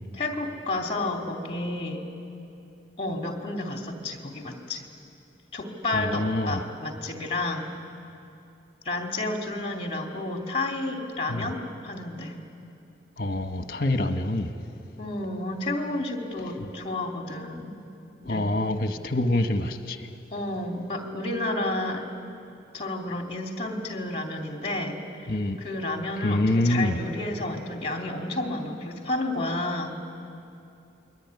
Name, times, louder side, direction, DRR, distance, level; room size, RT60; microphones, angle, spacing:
voice 1, 0.1-2.0 3.0-4.8 5.5-7.7 8.8-12.3 15.0-17.8 18.2-18.5 20.3-22.1 22.7-29.9, left 2 dB, 30° left, 2 dB, 2.7 m, -31 dB
voice 2, 5.9-6.6 11.3-11.5 13.2-14.5 18.3-20.0 25.3-25.6 26.2-27.0, left 1 dB, 50° left, 7 dB, 1.4 m, -25 dB
28.0 x 22.0 x 9.7 m, 2.6 s
head